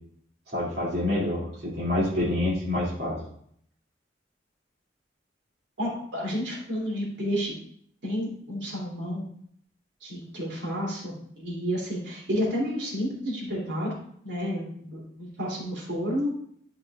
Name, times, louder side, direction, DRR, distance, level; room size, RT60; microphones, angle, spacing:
voice 1, 0.5-3.2, left 1 dB, 60° right, -8 dB, 2.5 m, -27 dB
voice 2, 5.8-7.5 8.0-9.2 10.0-13.9 14.2-16.3, equal, 80° right, -4 dB, 2.8 m, -30 dB
11.5 x 4.8 x 2.4 m, 0.64 s
head